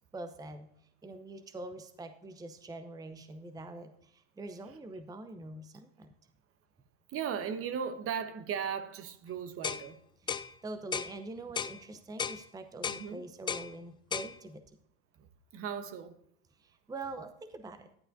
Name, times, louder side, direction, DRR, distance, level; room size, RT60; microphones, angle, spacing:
voice 1, 0.1-0.7 1.0-6.1 10.2-14.6 16.6-18.0, right 2 dB, 10° right, 0.7 m, -44 dB
voice 2, 7.1-10.0 12.9-13.2 15.2-15.3 15.5-16.1, right 7 dB, 45° right, 1.1 m, -37 dB
sound 1, 9.6-9.9 10.3-10.5 10.9-11.1 11.6-11.8 12.2-12.4 12.8-13.0 13.5-13.7 14.1-14.3, left 7 dB, 15° left, 0.3 m, -34 dB
11.5 x 10.0 x 2.6 m
hypercardioid pair, 85°, 33 cm